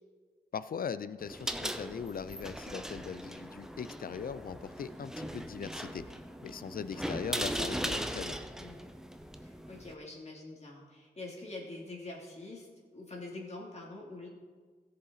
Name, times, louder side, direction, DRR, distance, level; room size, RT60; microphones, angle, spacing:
voice 1, 0.5-6.2 6.4-8.4, left 7 dB, 55° left, 14 dB, 0.5 m, -40 dB
sound 1, 1.2-9.9, equal, 5° right, 0.7 m, -39 dB
sound 2, 2.9-3.3 3.5-5.1 5.6-6.7 7.0-7.3 7.9-8.7, right 1 dB, 50° right, 3.2 m, -55 dB
voice 2, 9.4-12.7 12.9-14.3, left 2 dB, 40° left, -3 dB, 3.1 m, -45 dB
16.5 x 6.8 x 4.1 m, 1.5 s
cardioid pair, 60°, 18 cm